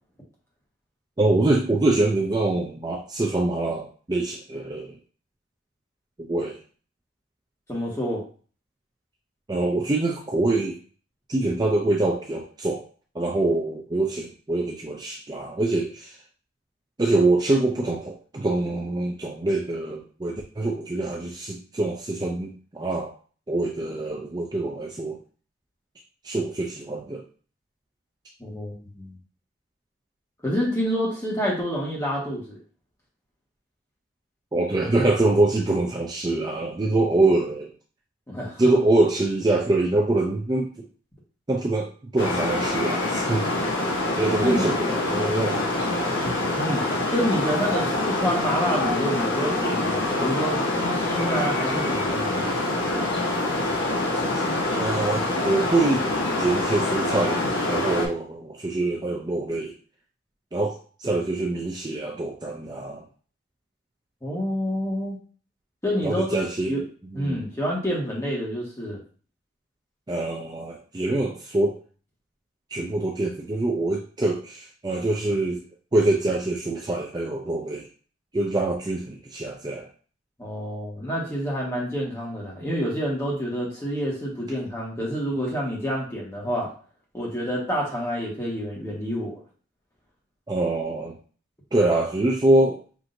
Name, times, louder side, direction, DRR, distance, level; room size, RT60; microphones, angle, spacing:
voice 1, 1.2-5.0 6.2-6.6 9.5-10.8 11.3-12.9 13.1-16.2 17.0-23.1 23.5-25.2 26.2-27.2 34.5-37.7 38.6-40.9 41.5-43.4 43.9-46.1 54.3-56.0 56.4-59.7 60.5-63.0 66.0-66.7 67.1-67.5 70.1-71.8 72.7-75.6 75.9-77.9 78.3-79.9 90.5-91.2 91.7-92.8, right 2 dB, 20° right, -1 dB, 0.4 m, -25 dB
voice 2, 7.7-8.2 28.4-29.2 30.4-32.6 38.3-38.8 44.4-44.7 46.5-46.8 47.1-52.5 64.2-65.2 65.8-66.8 67.1-69.0 80.4-86.7 87.1-89.4, equal, 15° left, -4 dB, 1.3 m, -28 dB
sound 1, 42.2-58.1, left 2 dB, 70° left, 1.3 m, -25 dB
5.8 x 2.7 x 2.6 m, 0.40 s
head